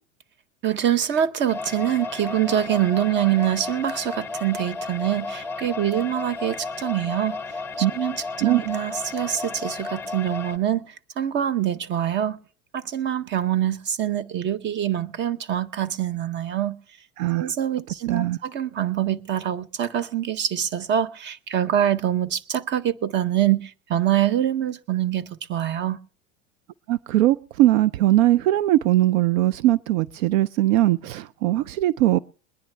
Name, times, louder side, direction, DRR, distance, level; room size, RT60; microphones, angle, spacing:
voice 1, 0.6-7.4 7.8-10.8 11.2-12.4 12.7-16.8 17.4-26.0, right 11 dB, 25° right, 0.7 m, -25 dB
sound 1, 1.5-10.6, left 3 dB, 5° left, 0.8 m, -33 dB
voice 2, 17.2-17.5 18.1-18.4 26.9-32.2, right 15 dB, 70° right, 0.5 m, -20 dB
22.0 x 10.0 x 3.3 m
supercardioid pair, 120°, 41 cm